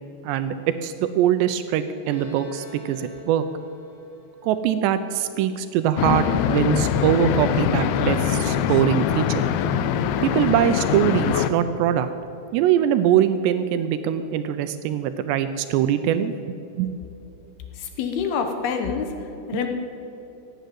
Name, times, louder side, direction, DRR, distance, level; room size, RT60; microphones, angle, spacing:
voice 1, 0.2-3.5 4.4-9.4 10.2-12.1 12.5-16.3 16.8-16.9, right 10 dB, 80° right, 10 dB, 2.7 m, -22 dB
Bowed string instrument, 2.0-5.6, left 4 dB, 15° right, 4.5 m, -45 dB
sound 1, 6.0-11.5, left 9 dB, 90° left, 2.1 m, -23 dB
voice 2, 17.7-19.7, left 6 dB, 70° left, 6 dB, 2.6 m, -27 dB
16.0 x 9.2 x 9.1 m, 2.9 s
omnidirectional pair, 5.2 m